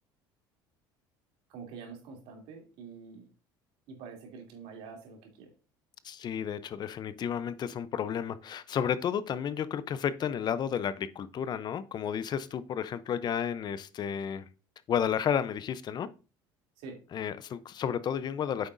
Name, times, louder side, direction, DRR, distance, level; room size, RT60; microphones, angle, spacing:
voice 1, 1.5-3.3 3.9-5.5 16.8-17.0, right 5 dB, 75° right, 2.9 m, -46 dB
voice 2, 6.0-14.5 14.9-16.1 17.1-18.7, left 8 dB, 45° left, 0.6 m, -32 dB
8.8 x 7.1 x 2.6 m
supercardioid pair, 90°, 10 cm